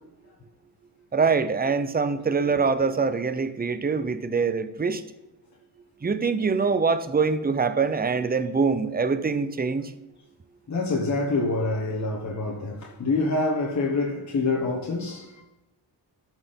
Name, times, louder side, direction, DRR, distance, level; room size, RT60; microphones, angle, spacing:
voice 1, 1.1-5.0 6.0-9.9, right 5 dB, 20° right, 0.7 m, -24 dB
voice 2, 10.7-15.4, left 3 dB, 40° left, 1.4 m, -26 dB
13.0 x 4.5 x 5.3 m
wide cardioid pair, 105°, 44 cm